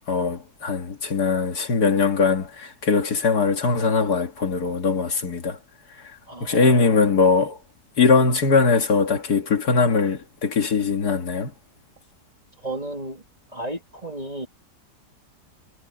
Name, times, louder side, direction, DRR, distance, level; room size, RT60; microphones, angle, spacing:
voice 1, 0.1-5.6 6.4-7.6 8.0-11.5, left 4 dB, 65° left, 2.3 m, -21 dB
voice 2, 6.3-7.1 12.6-13.2 13.5-14.5, right 1 dB, 20° right, 2.8 m, -33 dB
omnidirectional pair, 1.8 m